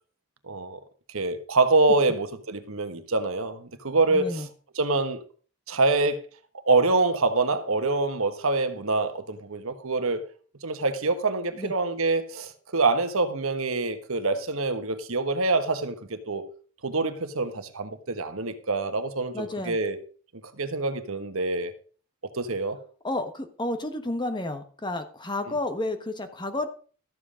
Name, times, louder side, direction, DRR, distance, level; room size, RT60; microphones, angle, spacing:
voice 1, 0.5-0.8 1.1-4.3 4.8-5.2 5.7-6.2 6.7-10.2 10.6-16.5 16.8-20.0 20.6-21.7 22.3-22.8, right 3 dB, 70° right, 1.3 m, -25 dB
voice 2, 4.1-4.5 11.5-11.7 19.3-19.8 23.0-26.7, left 2 dB, 20° left, 1.2 m, -31 dB
13.5 x 7.7 x 5.0 m
head